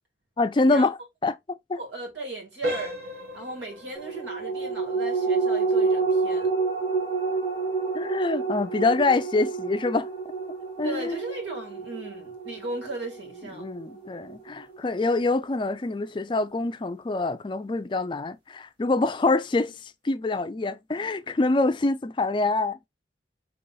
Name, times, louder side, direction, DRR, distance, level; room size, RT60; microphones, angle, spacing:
voice 1, 0.4-1.8 7.9-10.1 10.8-11.2 13.6-22.8, left 3 dB, 25° left, 0.3 m, -25 dB
voice 2, 1.7-2.9 3.3-6.5 10.8-13.7, right 2 dB, 85° right, 2.1 m, -37 dB
sound 1, 2.6-13.3 13.7-13.9 14.5-14.6 15.1-15.2, right 1 dB, 60° right, 1.3 m, -40 dB
sound 2, 3.9-14.8 15.1-15.2, right 4 dB, 30° right, 1.6 m, -28 dB
3.9 x 3.0 x 3.9 m
head